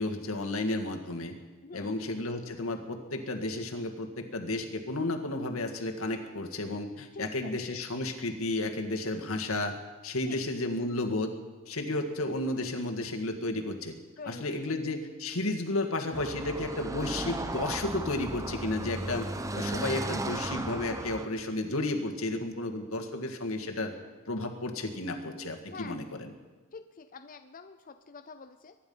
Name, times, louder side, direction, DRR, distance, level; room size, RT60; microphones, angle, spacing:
voice 1, 0.0-1.4 1.7-9.8 10.0-11.3 11.7-13.9 14.3-19.3 19.5-23.9 24.3-26.3, left 2 dB, 85° left, 3 dB, 1.9 m, -32 dB
voice 2, 1.6-2.0 7.1-7.5 10.3-10.4 14.2-14.8 25.7-26.0 26.7-28.8, left 4 dB, 40° left, 8 dB, 0.6 m, -46 dB
Car passing by / Traffic noise roadway noise, 16.1-21.3, right 2 dB, 15° right, 0.8 m, -35 dB
23.0 x 10.5 x 5.5 m, 1.3 s
head